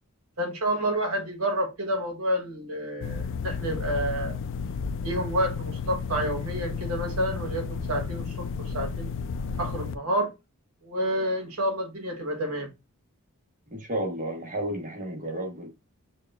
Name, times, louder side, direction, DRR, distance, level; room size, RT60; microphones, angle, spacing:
voice 1, 0.4-4.3 5.0-9.2 9.6-10.3 10.8-12.7, right 1 dB, 70° right, 1.2 m, -29 dB
sound 1, 3.0-10.0, left 5 dB, 60° left, 0.3 m, -32 dB
voice 2, 13.7-15.7, right 1 dB, 35° right, 1.2 m, -32 dB
6.2 x 2.3 x 2.4 m
head